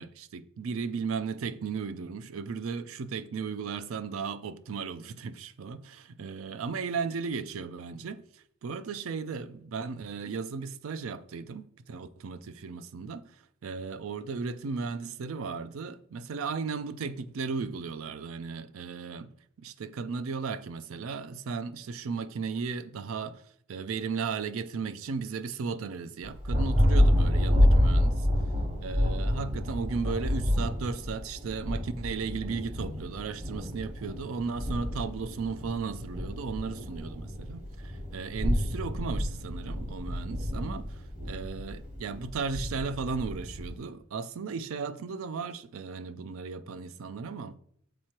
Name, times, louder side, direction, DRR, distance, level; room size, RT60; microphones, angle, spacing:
voice 1, 0.0-19.3 19.6-23.4 23.7-28.3 28.8-40.8 41.3-47.6, right 5 dB, 85° right, 0.4 m, -35 dB
Thunder, 26.2-43.8, left 1 dB, 35° right, 1.2 m, -28 dB
7.5 x 3.1 x 4.3 m
head